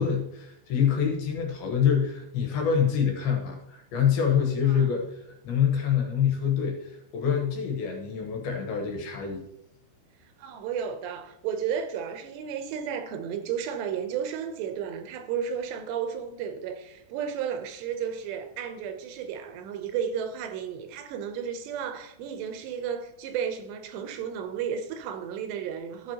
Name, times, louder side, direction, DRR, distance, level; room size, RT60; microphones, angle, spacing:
voice 1, 0.0-9.4, left 7 dB, 70° left, 2.9 m, -26 dB
voice 2, 10.4-26.1, right 8 dB, 85° right, 3.0 m, -33 dB
13.5 x 6.1 x 2.9 m
omnidirectional pair, 4.9 m